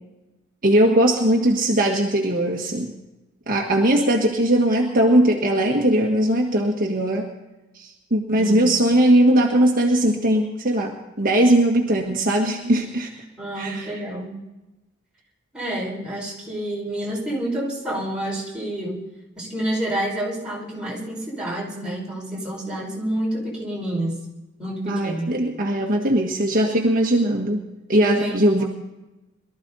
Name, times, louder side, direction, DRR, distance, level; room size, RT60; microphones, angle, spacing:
voice 1, 0.6-2.9 3.5-7.3 7.7-13.1 13.6-13.9 24.8-27.6 27.9-28.6, right 1 dB, 45° right, -1 dB, 1.6 m, -19 dB
voice 2, 8.3-8.9 13.4-14.4 15.5-19.0 19.4-24.2 24.6-25.3 28.2-28.7, right 1 dB, 5° right, -6 dB, 5.6 m, -28 dB
22.5 x 13.5 x 4.1 m, 1.0 s
head